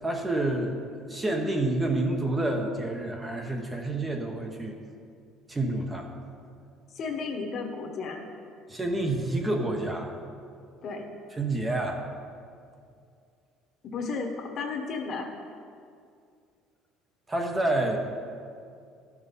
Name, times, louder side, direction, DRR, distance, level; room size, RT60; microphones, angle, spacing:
voice 1, 0.0-0.8 1.1-4.8 5.5-6.1 8.7-10.2 11.4-12.0 17.3-18.0, right 2 dB, 15° right, 2 dB, 1.0 m, -28 dB
voice 2, 6.9-8.3 10.8-11.1 13.9-15.3, left 4 dB, 45° left, 2 dB, 1.3 m, -33 dB
12.5 x 6.0 x 5.4 m, 2.3 s
cardioid pair, 125°, 0 cm